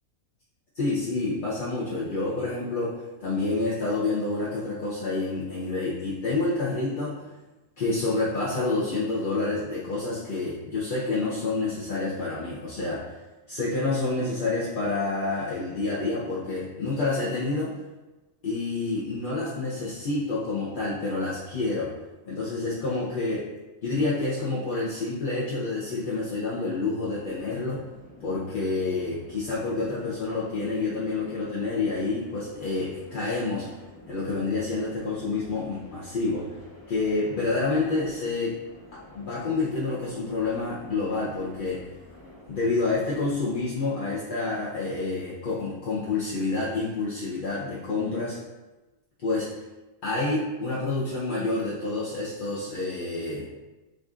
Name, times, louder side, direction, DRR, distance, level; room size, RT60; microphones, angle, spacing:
voice 1, 0.8-7.2 7.8-13.2 13.5-17.7 18.4-21.9 22.3-23.5 23.8-27.8 28.2-33.7 34.1-36.5 36.9-38.6 38.9-41.8 42.5-48.4 49.2-49.5 50.0-53.5, left 3 dB, 50° left, -7 dB, 0.7 m, -28 dB
sound 1, 27.0-43.6, left 1 dB, 15° left, 0.8 m, -49 dB
7.7 x 2.6 x 2.4 m, 1.1 s
omnidirectional pair, 1.5 m